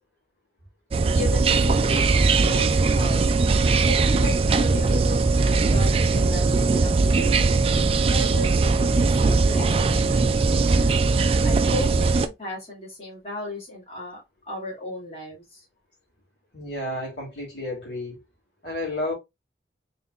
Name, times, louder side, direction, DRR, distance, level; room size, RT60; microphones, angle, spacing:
sound 1, 0.9-12.3, right 3 dB, 30° right, 0.3 m, -20 dB
voice 1, 1.1-3.3 3.8-7.3 8.1-10.3 10.6-14.2 14.5-15.7, left 2 dB, 35° left, 2.3 m, -36 dB
voice 2, 16.5-18.2 18.6-19.1, left 1 dB, 65° left, 2.4 m, -31 dB
4.0 x 3.9 x 2.4 m
head